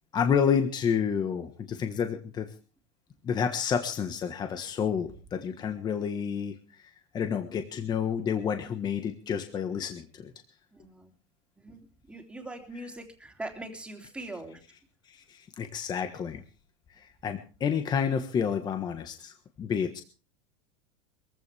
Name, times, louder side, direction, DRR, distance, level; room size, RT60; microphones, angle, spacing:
voice 1, 0.1-2.5 3.2-10.3 15.1-16.4 17.0-20.0, left 7 dB, 25° left, 7 dB, 1.4 m, -30 dB
voice 2, 10.7-11.1 11.6-11.8 12.1-14.6, right 2 dB, 5° right, 3 dB, 3.1 m, -41 dB
22.5 x 15.5 x 3.5 m, 0.35 s
supercardioid pair, 140°, 16 cm